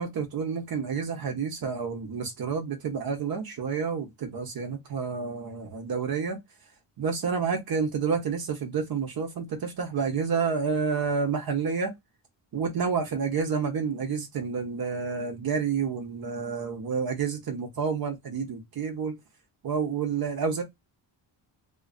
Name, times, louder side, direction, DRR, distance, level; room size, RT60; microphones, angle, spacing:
voice 1, 0.0-6.4 7.0-11.9 12.5-19.2 19.6-20.6, right 5 dB, 50° right, 1.0 m, -29 dB
2.7 x 2.6 x 2.4 m
cardioid pair, 90°, 44 cm